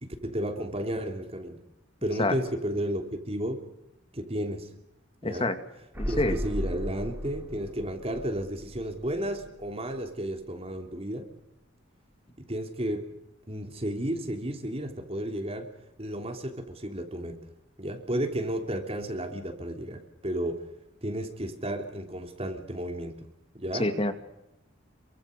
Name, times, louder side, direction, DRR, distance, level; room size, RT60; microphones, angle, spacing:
voice 1, 0.0-1.6 2.0-3.6 4.1-4.7 5.2-5.5 6.1-11.3 12.4-13.1 13.5-15.7 16.0-17.4 17.8-20.6 21.0-23.3 23.5-23.9, right 1 dB, 30° right, 4 dB, 3.2 m, -33 dB
voice 2, 5.2-5.6 6.0-6.4 23.8-24.1, left 1 dB, 30° left, 9 dB, 2.1 m, -27 dB
sound 1, 5.9-9.7 10.0-10.1, equal, 10° right, 4.5 m, -36 dB
28.0 x 24.0 x 6.7 m, 0.87 s
head